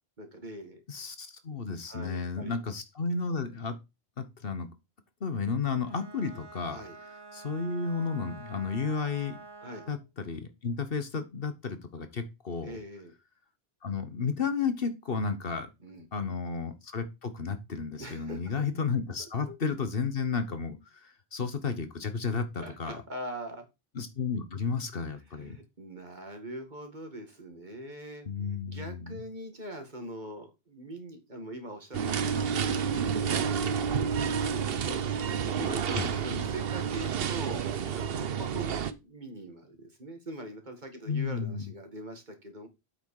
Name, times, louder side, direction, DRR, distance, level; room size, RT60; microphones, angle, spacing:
voice 1, 0.2-0.8 1.9-2.6 6.7-7.0 9.6-9.9 12.6-13.1 15.8-16.4 18.0-18.7 19.2-19.6 22.6-23.7 25.4-28.3 28.6-42.7, right 1 dB, 45° right, 5 dB, 2.2 m, -43 dB
voice 2, 0.9-3.8 4.2-4.7 5.2-6.8 7.3-9.4 9.9-12.8 13.8-15.7 16.1-23.0 23.9-25.6 28.3-29.2 35.9-36.1 41.1-41.7, left 5 dB, 60° left, 10 dB, 1.4 m, -32 dB
Bowed string instrument, 5.8-10.1, right 3 dB, 25° right, 0.8 m, -48 dB
sound 1, 31.9-38.9, right 7 dB, 65° right, 1.0 m, -30 dB
8.2 x 6.2 x 4.8 m, 0.24 s
omnidirectional pair, 1.1 m